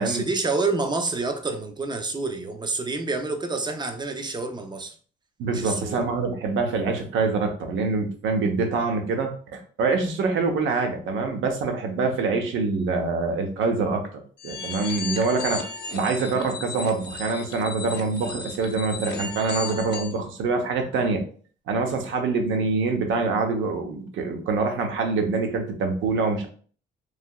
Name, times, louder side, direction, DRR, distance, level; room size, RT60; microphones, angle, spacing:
voice 1, 0.0-4.9 5.5-6.0, right 3 dB, 20° right, 0.5 m, -28 dB
voice 2, 5.4-15.6 15.9-21.2 21.7-26.5, right 4 dB, 75° right, 0.7 m, -25 dB
sound 1, 14.4-20.2, left 4 dB, 60° left, 0.7 m, -35 dB
3.3 x 2.7 x 2.2 m
cardioid pair, 90°, 20 cm